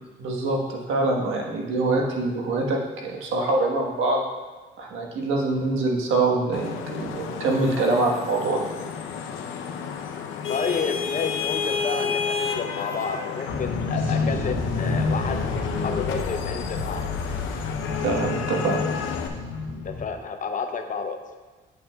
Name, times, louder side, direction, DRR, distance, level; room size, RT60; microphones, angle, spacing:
voice 1, 0.2-4.2 4.8-8.6 18.0-18.8, right 2 dB, 80° right, 0 dB, 1.3 m, -24 dB
Vehicle horn car horn honking / Traffic noise roadway noise, 6.5-19.3, left 6 dB, 85° left, 0.7 m, -31 dB
voice 2, 10.5-17.1 19.8-21.2, left 5 dB, 40° left, 6 dB, 0.7 m, -31 dB
sound 1, 13.5-20.0, left 3 dB, 70° left, 1.5 m, -29 dB
9.0 x 8.5 x 2.3 m, 1.3 s
cardioid pair, 90°, 20 cm